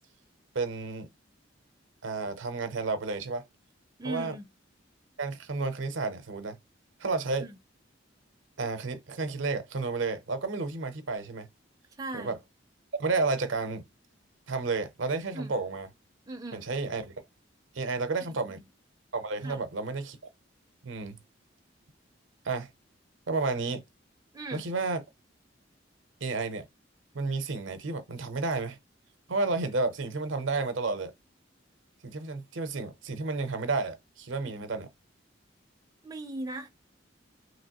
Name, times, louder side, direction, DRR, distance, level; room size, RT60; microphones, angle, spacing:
voice 1, 0.5-1.1 2.0-3.4 4.0-4.3 5.2-6.6 7.0-7.5 8.6-11.5 12.1-12.4 12.9-13.8 14.5-15.9 16.5-17.1 17.7-18.6 19.1-20.2 20.8-21.2 22.4-22.7 23.3-23.8 24.5-25.0 26.2-26.6 27.1-28.8 29.3-31.1 32.0-34.9, right 3 dB, 75° right, 0.7 m, -31 dB
voice 2, 4.0-4.5 7.4-7.6 12.0-12.4 15.3-15.5 16.3-16.7 18.3-18.7 19.4-19.6 24.3-24.7 34.4-34.7 36.0-36.7, right 2 dB, 20° right, 0.5 m, -39 dB
3.0 x 3.0 x 2.9 m
head